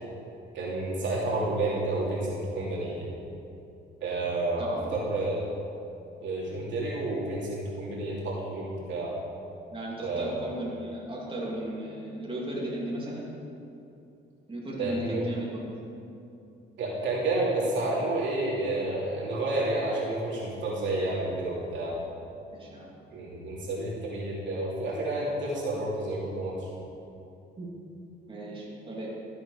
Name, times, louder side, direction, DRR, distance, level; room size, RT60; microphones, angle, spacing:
voice 1, 0.5-3.1 4.0-5.5 6.2-9.1 10.0-10.3 14.8-15.2 16.8-22.0 23.1-26.7, right 2 dB, 70° right, -6 dB, 3.0 m, -30 dB
voice 2, 4.6-5.0 9.7-13.2 14.5-15.7 22.5-22.9 27.6-27.7 28.3-29.1, right 1 dB, 25° right, -5 dB, 3.0 m, -36 dB
14.0 x 8.1 x 5.0 m, 2.7 s
cardioid pair, 90°, 20 cm